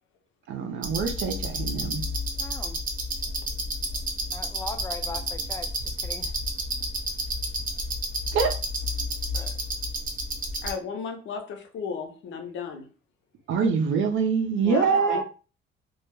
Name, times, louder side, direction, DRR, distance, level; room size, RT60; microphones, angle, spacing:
voice 1, 0.5-2.0 8.3-8.5 13.5-15.2, right 5 dB, 75° right, 0.6 m, -25 dB
sound 1, 0.8-10.7, right 1 dB, 45° right, 0.8 m, -30 dB
voice 2, 2.4-2.8 4.3-6.3 9.3-9.6 14.7-15.2, left 3 dB, 15° left, 0.4 m, -39 dB
voice 3, 10.6-12.9 14.6-15.2, left 6 dB, 70° left, 0.6 m, -34 dB
2.3 x 2.0 x 3.0 m
cardioid pair, 90°, 20 cm